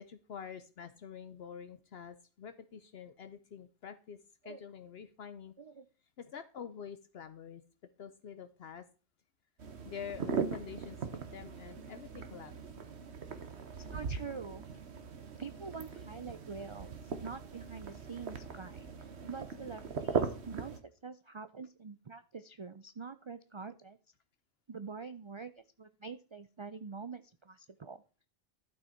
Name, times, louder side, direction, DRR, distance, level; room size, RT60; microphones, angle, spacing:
voice 1, 0.0-4.2 4.4-5.5 6.2-7.6 8.0-8.8 9.8-12.5, left 7 dB, 65° left, 10 dB, 0.9 m, -47 dB
sound 1, 9.6-20.8, right 5 dB, 70° right, 1.4 m, -39 dB
voice 2, 13.8-14.7 15.4-24.0 24.7-28.0, right 5 dB, 50° right, 12 dB, 0.3 m, -46 dB
12.0 x 6.2 x 4.4 m, 0.37 s
omnidirectional pair, 1.2 m